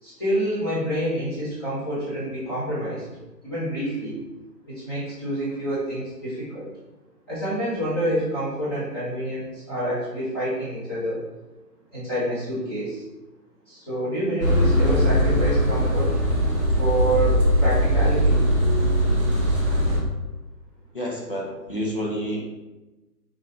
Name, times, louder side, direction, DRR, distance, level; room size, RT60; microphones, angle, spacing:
voice 1, 0.0-3.0 3.4-4.2 4.7-6.7 7.3-11.2 11.9-13.0 13.7-16.2 16.8-18.5, right 1 dB, 15° left, -10 dB, 1.0 m, -27 dB
sound 1, 14.4-20.0, equal, 20° right, 0.8 m, -20 dB
voice 2, 20.9-22.5, equal, 35° left, -2 dB, 0.6 m, -29 dB
3.9 x 2.7 x 4.4 m, 1.1 s
hypercardioid pair, 170°, 49 cm